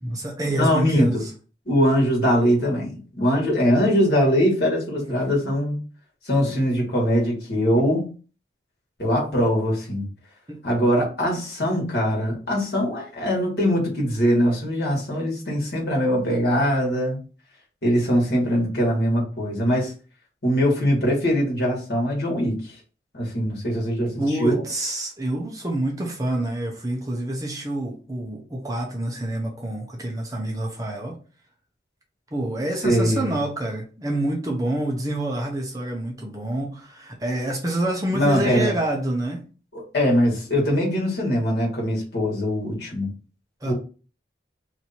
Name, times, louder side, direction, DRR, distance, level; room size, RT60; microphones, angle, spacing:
voice 1, 0.0-1.3 5.0-5.2 10.5-10.6 24.2-31.2 32.3-39.4 43.6-43.7, right 1 dB, 20° right, 0.7 m, -27 dB
voice 2, 0.6-1.2 1.7-5.8 6.2-8.1 9.0-10.0 10.6-17.2 17.8-19.9 20.4-22.6 23.1-24.6 32.8-33.3 38.1-38.7 39.7-43.1 43.6-43.7, equal, 60° left, 1.5 m, -22 dB
3.0 x 2.7 x 4.1 m
head